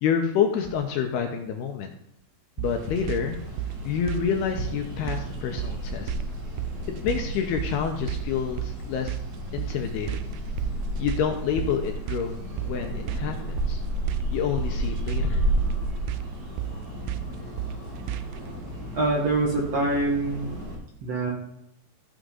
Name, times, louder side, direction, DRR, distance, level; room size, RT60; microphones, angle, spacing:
voice 1, 0.0-1.9 2.6-3.4 3.8-6.1 6.9-9.2 9.5-10.2 11.0-13.8 14.3-15.4, left 7 dB, 80° left, 4 dB, 2.6 m, -28 dB
sound 1, 2.6-20.8, equal, 40° right, 1.4 m, -33 dB
sound 2, 2.6-18.5, right 14 dB, 80° right, 2.5 m, -34 dB
voice 2, 18.9-20.5 21.0-21.3, right 2 dB, 55° right, -1 dB, 1.8 m, -24 dB
14.5 x 6.4 x 3.9 m, 0.76 s
omnidirectional pair, 5.1 m